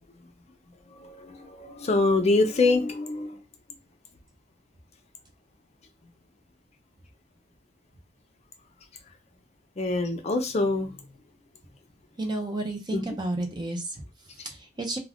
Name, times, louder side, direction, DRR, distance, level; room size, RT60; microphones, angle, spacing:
voice 1, 1.0-3.4 9.8-10.9 12.9-13.0, left 3 dB, 35° left, 0.4 m, -25 dB
voice 2, 12.2-15.0, right 2 dB, 25° right, 0.5 m, -32 dB
2.4 x 2.2 x 3.4 m
head